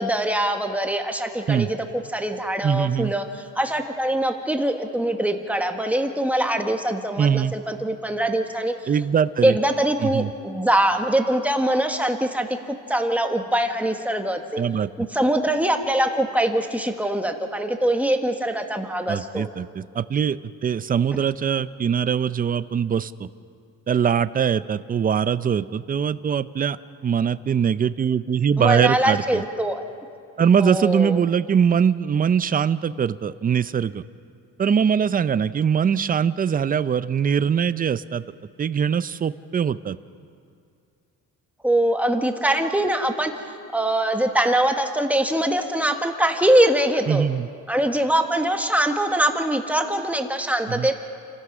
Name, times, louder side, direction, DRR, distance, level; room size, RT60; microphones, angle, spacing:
voice 1, 0.0-3.2 3.5-8.9 9.4-14.6 15.0-19.5 28.6-29.8 30.6-31.2 41.6-43.3 43.7-47.3 47.7-50.9, right 1 dB, 5° right, 4 dB, 1.4 m, -23 dB
voice 2, 2.6-3.1 7.2-7.5 8.9-9.6 10.0-10.3 14.6-14.9 19.1-23.3 23.9-26.8 27.0-29.4 30.4-34.0 34.6-38.2 38.6-40.0 47.1-47.5 50.7-50.9, right 7 dB, 25° right, 15 dB, 0.5 m, -22 dB
29.0 x 14.5 x 6.1 m, 2.3 s
cardioid pair, 120°, 35 cm